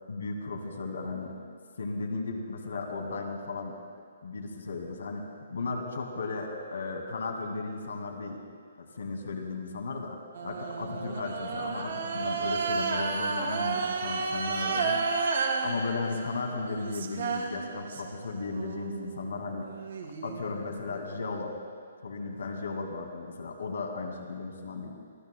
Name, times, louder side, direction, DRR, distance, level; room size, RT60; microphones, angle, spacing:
voice 1, 0.1-1.4 1.8-3.8 4.2-5.2 5.5-8.4 8.8-15.0 15.6-19.7 20.2-21.6 22.0-25.0, left 3 dB, 85° left, 3 dB, 2.1 m, -35 dB
sound 1, 10.3-18.2 18.5-21.2, right 4 dB, 70° right, 2.1 m, -32 dB
27.5 x 14.5 x 2.3 m, 2.1 s
hypercardioid pair, 175°, 0 cm